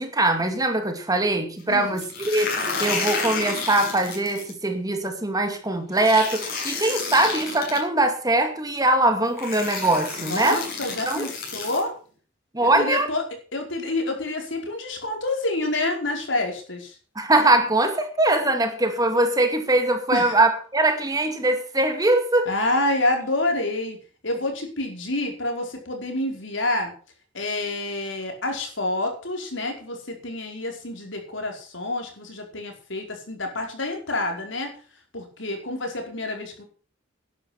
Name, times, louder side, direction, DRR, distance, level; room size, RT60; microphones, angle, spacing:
voice 1, 0.0-2.5 2.8-10.6 11.1-11.2 12.5-13.1 17.2-22.5, right 2 dB, 20° right, 6 dB, 2.3 m, -22 dB
voice 2, 1.7-2.0 10.2-11.9 12.6-13.2 13.5-16.9 20.1-20.3 22.5-24.0 24.2-26.9 27.3-34.7 35.1-36.6, left 2 dB, 70° left, 3 dB, 4.9 m, -28 dB
sound 1, 2.0-4.5 6.0-7.8 8.8-8.9 9.4-11.8, left 4 dB, 55° left, 6.7 m, -30 dB
12.5 x 11.0 x 6.0 m, 0.39 s
head